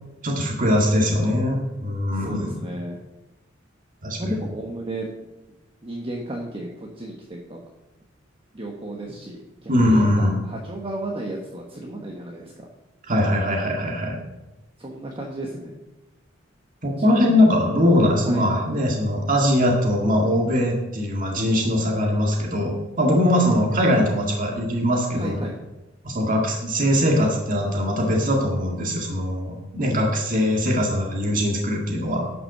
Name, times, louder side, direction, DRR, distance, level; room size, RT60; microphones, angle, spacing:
voice 1, 0.2-2.6 4.0-4.3 9.7-10.4 13.1-14.2 16.8-25.4 26.0-32.3, left 1 dB, 45° right, 0 dB, 1.8 m, -21 dB
voice 2, 2.1-3.0 4.2-5.1 5.8-7.6 8.5-12.7 14.8-15.8 17.0-17.5 18.2-18.5 25.1-25.6, right 1 dB, 30° right, -1 dB, 1.2 m, -34 dB
11.0 x 5.9 x 6.5 m, 1.0 s
head